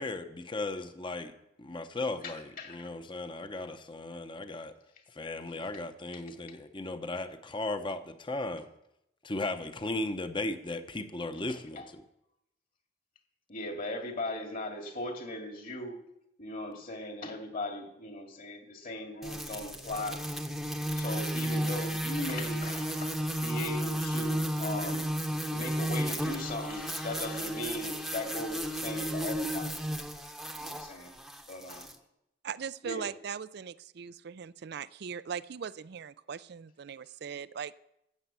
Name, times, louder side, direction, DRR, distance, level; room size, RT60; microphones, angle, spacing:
voice 1, 0.0-1.3 1.6-4.7 5.1-8.7 9.2-12.0, left 2 dB, 25° left, 9 dB, 0.9 m, -36 dB
voice 2, 2.2-2.8 11.8-11.9 13.5-16.0 16.4-20.2 21.0-25.1 25.5-29.7 30.6-31.1 31.5-31.9 32.8-33.1, left 1 dB, 50° left, 4 dB, 2.3 m, -38 dB
sound 1, 19.2-31.9, equal, ahead, 0.9 m, -33 dB
voice 3, 32.4-37.7, right 7 dB, 60° right, 17 dB, 0.4 m, -40 dB
13.5 x 6.6 x 8.4 m, 0.83 s
head